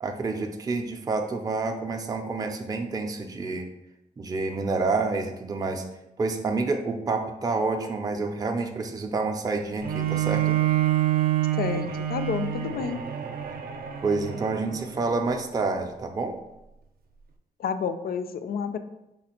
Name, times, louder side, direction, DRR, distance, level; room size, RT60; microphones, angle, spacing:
voice 1, 0.0-3.7 4.2-5.9 6.2-10.6 14.0-16.4, right 3 dB, 25° right, 4 dB, 0.4 m, -28 dB
Bowed string instrument, 9.8-15.0, right 12 dB, 75° right, 0.5 m, -27 dB
voice 2, 11.5-13.0 17.6-18.8, left 6 dB, 80° left, 9 dB, 0.4 m, -30 dB
5.2 x 2.4 x 4.2 m, 0.89 s
wide cardioid pair, 145°, 15 cm